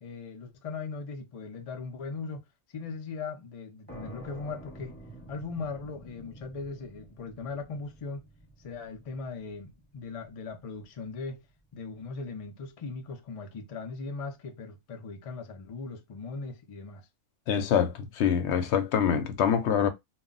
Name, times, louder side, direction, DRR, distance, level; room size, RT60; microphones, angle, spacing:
voice 1, 0.0-2.4 2.7-5.0 5.3-8.2 8.6-11.4 11.7-17.1, left 4 dB, 55° left, 0.4 m, -39 dB
Old Metal, 3.9-11.3, right 1 dB, 10° left, 0.9 m, -49 dB
voice 2, 17.5-19.9, left 8 dB, 70° left, 0.8 m, -25 dB
2.2 x 2.0 x 3.7 m
omnidirectional pair, 1.3 m